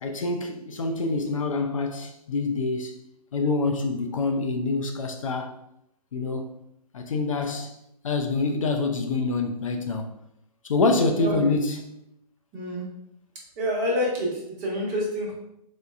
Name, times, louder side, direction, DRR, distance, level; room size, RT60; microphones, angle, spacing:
voice 1, 0.0-3.0 3.3-5.6 6.1-6.4 6.9-7.7 8.0-10.1 10.6-11.8, left 3 dB, 55° left, 0.4 m, -26 dB
voice 2, 11.2-11.5 12.5-12.8 13.6-15.3, equal, 25° right, 0.9 m, -27 dB
4.4 x 2.2 x 2.3 m
figure-of-eight pair, 125°, 21 cm